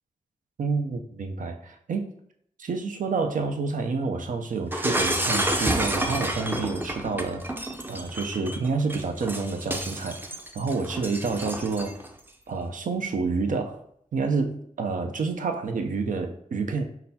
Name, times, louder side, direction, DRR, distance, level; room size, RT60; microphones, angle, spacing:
voice 1, 0.6-2.1 2.6-7.4 7.9-12.0 12.5-13.8 14.1-16.8, right 4 dB, 70° right, 5 dB, 0.6 m, -28 dB
Shatter, 4.7-12.1, right 1 dB, 15° right, 0.5 m, -30 dB
4.3 x 4.0 x 2.8 m, 0.68 s
cardioid pair, 70°, 14 cm